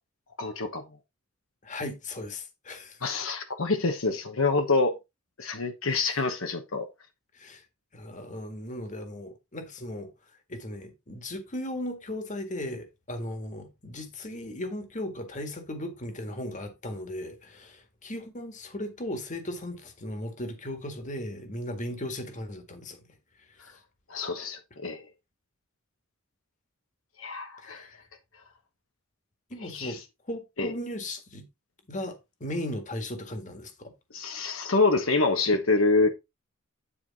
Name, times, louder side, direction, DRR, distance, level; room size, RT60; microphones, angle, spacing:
voice 1, 0.4-0.8 3.0-4.9 5.4-6.9 24.1-25.0 27.2-27.8 29.6-30.0 30.6-30.7 34.1-36.2, left 3 dB, 70° left, 1.2 m, -26 dB
voice 2, 1.6-3.0 5.9-6.1 7.3-7.6 7.9-10.1 10.5-23.0 23.6-23.8 27.6-28.0 29.5-30.0 30.3-31.5 31.9-33.9, left 1 dB, 35° left, 1.7 m, -37 dB
10.0 x 4.7 x 4.1 m
head